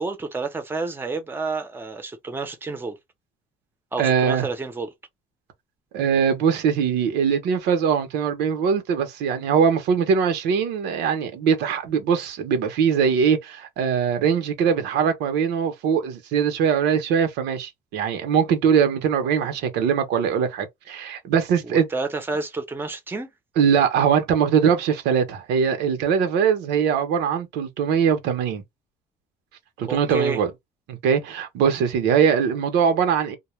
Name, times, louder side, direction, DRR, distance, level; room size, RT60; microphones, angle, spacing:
voice 1, 0.0-3.0 3.9-4.9 21.6-23.3 29.9-30.4, right 3 dB, 10° right, 0.6 m, -29 dB
voice 2, 4.0-4.5 5.9-21.9 23.6-28.6 29.8-30.5 30.9-33.4, right 7 dB, 90° right, 0.8 m, -21 dB
2.2 x 2.1 x 3.0 m
cardioid pair, 110°, 17 cm